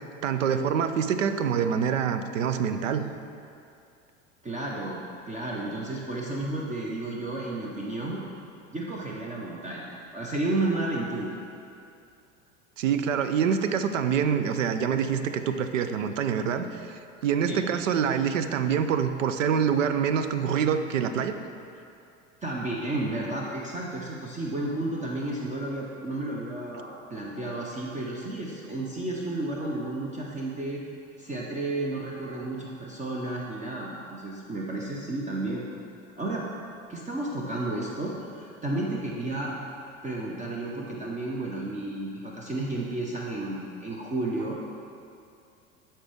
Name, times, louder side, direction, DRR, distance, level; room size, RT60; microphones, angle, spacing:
voice 1, 0.2-3.1 12.8-21.4, right 7 dB, 80° right, 9 dB, 0.6 m, -26 dB
voice 2, 4.4-8.2 8.7-11.4 17.4-17.6 22.4-30.8 31.2-35.6 36.2-36.4 36.9-39.5 40.0-44.6, right 2 dB, 20° right, -3 dB, 0.9 m, -32 dB
12.5 x 4.4 x 3.5 m, 2.5 s
hypercardioid pair, 80°, 38 cm